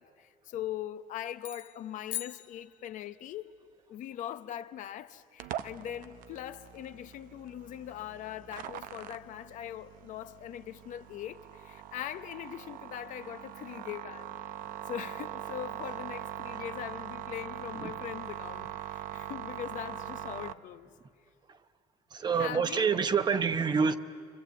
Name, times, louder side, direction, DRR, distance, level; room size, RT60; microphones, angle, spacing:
voice 1, 0.0-3.5 3.9-14.4 14.9-20.9 22.3-23.0, left 11 dB, 65° left, 0.9 m, -41 dB
sound 1, 1.4-3.3, left 12 dB, 80° left, 1.3 m, -42 dB
sound 2, 5.4-20.5, right 11 dB, 75° right, 0.8 m, -42 dB
voice 2, 22.1-24.0, right 6 dB, 30° right, 0.9 m, -27 dB
29.0 x 25.0 x 8.2 m
cardioid pair, 140°, 14 cm